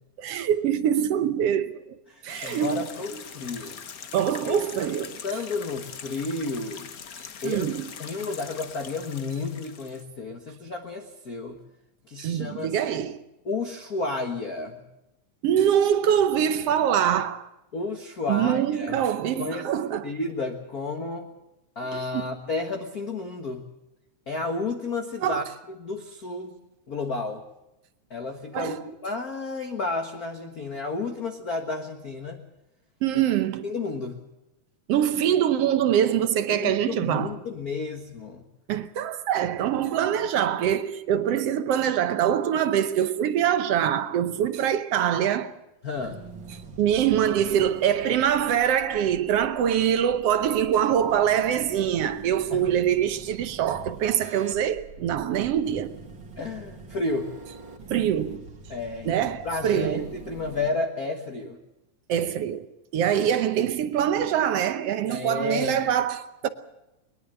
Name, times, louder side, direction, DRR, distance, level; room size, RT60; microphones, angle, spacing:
voice 1, 0.2-2.0 2.2-3.2 4.1-5.2 7.2-7.9 12.2-13.2 15.4-17.5 18.3-20.1 21.9-22.4 25.2-25.5 28.5-28.9 33.0-33.7 34.9-37.4 38.7-45.6 46.8-56.0 57.9-58.5 59.0-60.2 62.1-66.5, right 9 dB, 65° right, 1.7 m, -24 dB
voice 2, 2.1-3.8 4.4-4.6 5.2-6.9 7.4-7.7 8.0-11.6 12.1-12.7 13.4-14.8 17.7-19.0 19.4-19.7 20.0-21.3 21.7-23.6 24.3-25.4 25.8-26.6 26.9-27.4 28.1-32.4 33.6-34.2 36.5-38.4 45.8-46.2 52.5-52.7 56.4-57.3 58.7-61.6 65.1-65.8, left 3 dB, 40° left, 1.6 m, -32 dB
sound 1, 2.3-10.0, left 7 dB, 85° left, 0.7 m, -42 dB
sound 2, 46.0-60.7, right 3 dB, 40° right, 2.9 m, -45 dB
21.5 x 21.0 x 6.7 m
omnidirectional pair, 3.5 m